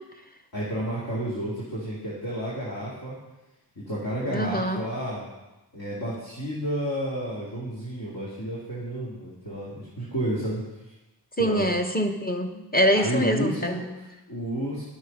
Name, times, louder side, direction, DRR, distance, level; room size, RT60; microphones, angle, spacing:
voice 1, 0.5-3.1 3.9-5.3 5.7-10.9 11.4-11.7 12.9-14.8, right 1 dB, 60° left, -9 dB, 2.4 m, -31 dB
voice 2, 4.3-4.8 11.4-13.7, equal, 20° left, 3 dB, 1.1 m, -24 dB
11.5 x 6.6 x 5.3 m, 1.0 s
wide cardioid pair, 55°, 42 cm